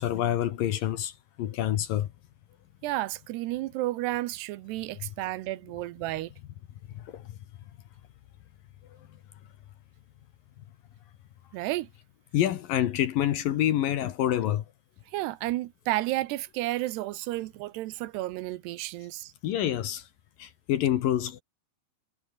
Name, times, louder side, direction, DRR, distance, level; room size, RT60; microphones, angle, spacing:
voice 1, 0.0-2.1 5.0-5.1 6.9-7.4 8.9-9.0 12.3-14.7 19.4-20.1 20.4-21.4, left 11 dB, 65° left, 2.6 m, -27 dB
voice 2, 2.8-6.3 11.5-11.9 15.1-19.3, right 17 dB, 80° right, 2.8 m, -32 dB
omnidirectional pair, 5.0 m